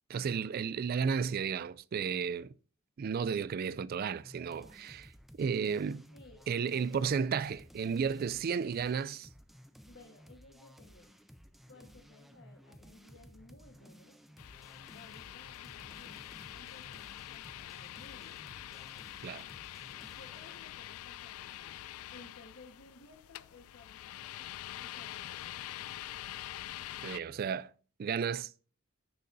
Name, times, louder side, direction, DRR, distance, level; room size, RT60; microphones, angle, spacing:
voice 1, 0.1-2.5 3.0-5.1 5.4-6.0 6.5-9.3 19.2-19.5 27.0-27.7 28.0-28.5, right 6 dB, 45° right, 0.3 m, -33 dB
sound 1, 4.1-20.6, equal, ahead, 0.6 m, -56 dB
voice 2, 6.1-7.1 9.9-11.2 11.7-14.2 14.9-18.4 19.9-21.8 22.1-25.9, left 2 dB, 60° left, 1.3 m, -57 dB
sound 2, 14.4-27.2, left 13 dB, 85° left, 0.3 m, -45 dB
15.0 x 6.6 x 2.6 m
head